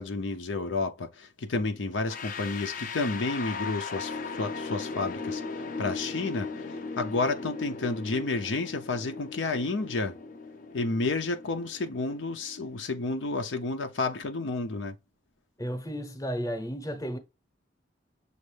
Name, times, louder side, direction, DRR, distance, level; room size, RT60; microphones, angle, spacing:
voice 1, 0.0-6.7 7.0-10.1 10.7-14.9, left 3 dB, 90° left, 0.7 m, -31 dB
sound 1, 2.1-13.0, left 4 dB, 50° left, 0.5 m, -38 dB
voice 2, 15.6-17.2, equal, 20° left, 0.8 m, -33 dB
6.4 x 2.6 x 3.2 m
head